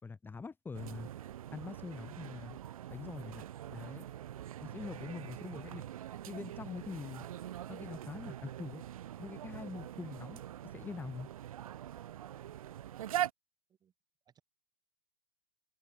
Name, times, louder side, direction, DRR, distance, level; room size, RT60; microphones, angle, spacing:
voice 1, 0.0-1.1 1.5-2.6 2.9-4.1 4.6-5.8 6.3-7.3 7.7-8.8 9.2-11.3, left 4 dB, 10° left, 2.1 m, -44 dB
sound 1, 0.7-13.3, right 11 dB, 70° right, 1.5 m, -43 dB
voice 2, 2.3-2.6 13.7-13.9 14.3-14.4, right 8 dB, 20° right, 5.3 m, -68 dB
hypercardioid pair, 125°, 19 cm